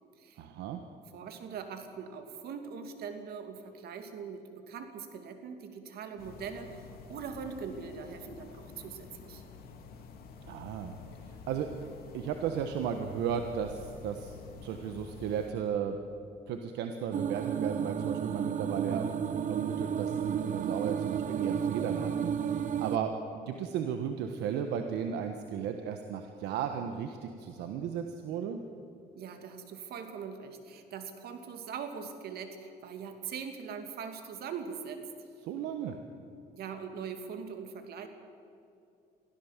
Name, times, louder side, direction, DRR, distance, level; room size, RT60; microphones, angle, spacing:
voice 1, 0.4-0.8 10.4-11.0 11.3-11.7 12.1-14.3 14.6-16.0 16.5-19.1 19.5-23.1 23.5-28.6 35.4-36.0, right 8 dB, 85° right, 6 dB, 1.3 m, -35 dB
voice 2, 1.1-9.4 29.1-35.0 36.5-38.1, right 6 dB, 65° right, 6 dB, 2.6 m, -42 dB
sound 1, 6.2-15.5, left 5 dB, 65° left, 2.8 m, -49 dB
sound 2, 17.1-23.0, right 8 dB, 50° right, 0.9 m, -32 dB
23.5 x 15.5 x 7.4 m, 2.6 s
cardioid pair, 110°, 17 cm